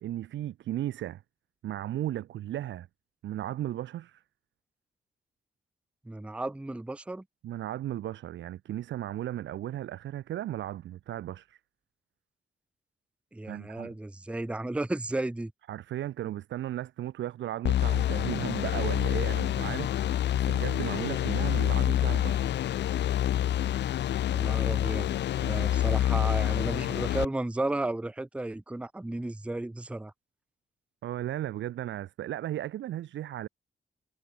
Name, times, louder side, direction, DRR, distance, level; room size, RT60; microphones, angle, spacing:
voice 1, 0.0-1.2 1.6-2.9 3.2-4.2 7.4-11.6 13.5-13.9 15.7-22.6 31.0-33.5, right 13 dB, 85° right, 0.4 m, -35 dB
voice 2, 6.1-7.2 13.3-15.5 24.3-30.1, right 2 dB, 5° right, 0.6 m, -34 dB
sound 1, 17.6-27.2, left 12 dB, 70° left, 0.4 m, -27 dB
sound 2, 19.6-24.1 26.5-26.7, left 6 dB, 50° left, 3.2 m, -48 dB
wide cardioid pair, 145°, 19 cm